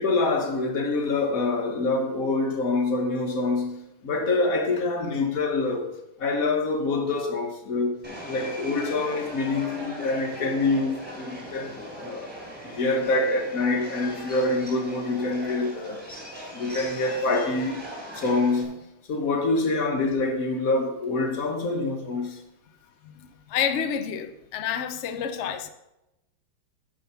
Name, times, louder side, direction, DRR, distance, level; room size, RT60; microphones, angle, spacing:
voice 1, 0.0-8.0 8.3-12.3 12.6-16.0 16.5-17.8 18.1-18.8 19.1-22.4, left 3 dB, 50° left, 1.6 m, -26 dB
Subway metro underground, 8.0-18.6, equal, 5° right, 3.3 m, -39 dB
voice 2, 23.0-25.7, left 8 dB, 80° left, 0.6 m, -29 dB
9.9 x 6.3 x 5.6 m
omnidirectional pair, 2.1 m